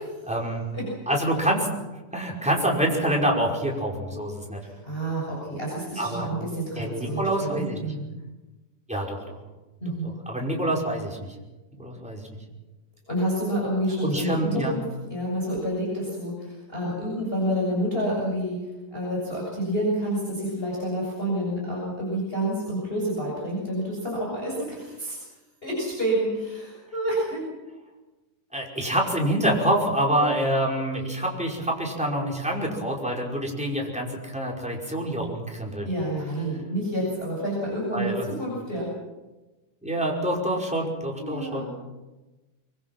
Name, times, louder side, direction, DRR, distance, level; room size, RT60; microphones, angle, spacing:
voice 1, 0.3-0.6 1.1-1.7 2.1-4.6 6.0-6.3 6.8-7.9 8.9-9.4 10.3-11.3 11.8-12.3 14.0-14.8 28.5-35.9 37.9-38.3 39.8-41.7, right 1 dB, ahead, -2 dB, 5.2 m, -26 dB
voice 2, 4.6-8.1 9.8-10.1 13.1-14.8 15.1-18.6 18.9-25.2 25.6-27.4 30.1-30.3 35.8-38.9 41.1-41.7, right 1 dB, 15° left, -4 dB, 7.2 m, -29 dB
25.0 x 24.0 x 6.2 m, 1.1 s
omnidirectional pair, 3.5 m